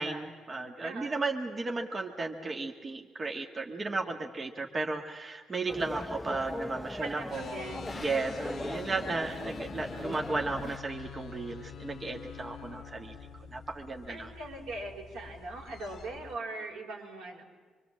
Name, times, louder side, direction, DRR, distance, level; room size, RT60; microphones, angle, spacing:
voice 1, 0.0-7.6 8.0-13.1 13.5-14.3, right 3 dB, 30° right, 2 dB, 1.6 m, -34 dB
voice 2, 0.8-1.3 7.0-7.9 14.1-17.4, right 2 dB, 85° right, 0 dB, 4.4 m, -40 dB
sound 1, 5.7-10.8, left 1 dB, 10° left, 0.7 m, -39 dB
sound 2, 7.3-16.4, left 8 dB, 60° left, 0.8 m, -46 dB
25.0 x 23.5 x 7.5 m, 1.5 s
cardioid pair, 90°, 0 cm